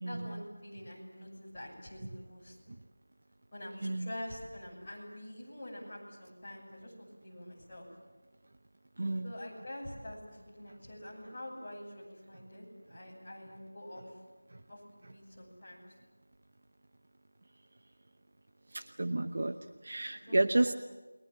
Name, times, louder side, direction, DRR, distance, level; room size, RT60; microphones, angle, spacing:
voice 1, 0.0-2.6 3.5-7.9 9.2-14.2 14.7-15.8 20.1-20.4, left 1 dB, 15° left, -8 dB, 6.5 m, -46 dB
voice 2, 9.0-9.3 14.5-14.6 18.7-20.7, right 2 dB, 35° right, 9 dB, 0.8 m, -31 dB
29.5 x 22.0 x 7.7 m, 1.3 s
figure-of-eight pair, 180°, 0 cm